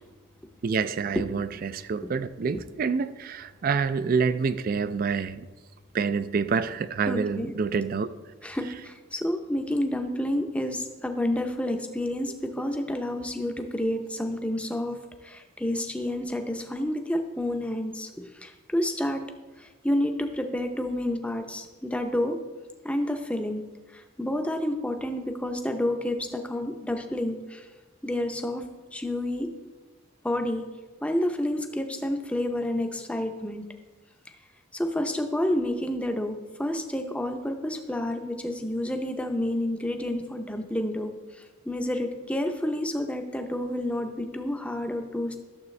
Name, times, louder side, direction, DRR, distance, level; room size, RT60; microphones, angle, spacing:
voice 1, 0.6-5.5 5.9-8.1, right 5 dB, 45° right, 14 dB, 0.3 m, -27 dB
voice 2, 7.1-7.5 8.4-15.0 15.2-19.2 19.6-22.4 22.8-23.6 23.9-27.7 28.0-28.7 28.9-29.5 30.2-30.7 31.0-33.6 34.7-41.1 41.7-45.4, left 1 dB, 5° left, 5 dB, 0.6 m, -29 dB
12.0 x 7.2 x 3.2 m, 1.3 s
head